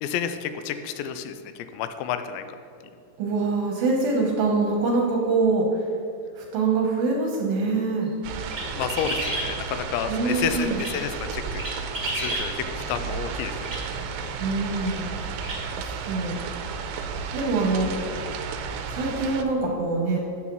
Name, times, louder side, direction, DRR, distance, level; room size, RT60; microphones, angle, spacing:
voice 1, 0.0-2.4 8.6-11.7 12.1-13.8, left 8 dB, 85° left, 9 dB, 2.8 m, -30 dB
voice 2, 3.2-5.8 6.4-8.1 10.1-10.8 14.4-15.1 15.6-16.4 17.3-18.1 18.9-20.2, right 3 dB, 70° right, 0 dB, 2.4 m, -24 dB
sound 1, 8.2-19.4, right 5 dB, 90° right, 3.0 m, -33 dB
sound 2, 8.5-9.5 10.6-10.9 11.6-12.5 13.6-13.8 14.9-15.0 15.4-15.6, right 1 dB, 25° right, 1.3 m, -30 dB
12.5 x 8.3 x 3.1 m, 2.7 s
omnidirectional pair, 5.1 m